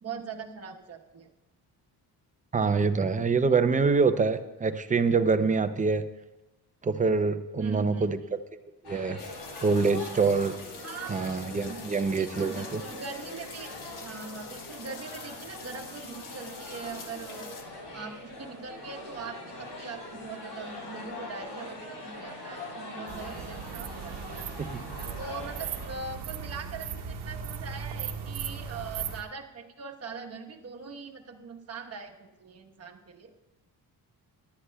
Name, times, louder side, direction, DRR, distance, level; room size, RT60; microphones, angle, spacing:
voice 1, 0.0-1.3 7.6-8.1 10.8-11.2 11.7-11.8 12.2-13.7 14.0-17.5 17.9-24.4 25.2-33.3, right 5 dB, 40° right, 2 dB, 1.1 m, -41 dB
voice 2, 2.5-6.0 6.8-8.4 8.9-9.2 9.6-10.5 11.1-12.8 24.6-24.8, right 4 dB, 20° right, 10 dB, 0.5 m, -25 dB
sound 1, 8.8-25.9, left 2 dB, 80° left, 3.8 m, -42 dB
sound 2, 9.2-17.6, left 5 dB, 55° left, 1.2 m, -46 dB
sound 3, 23.1-29.2, right 7 dB, 75° right, 1.0 m, -37 dB
18.0 x 11.5 x 2.3 m, 1.0 s
cardioid pair, 125°, 40 cm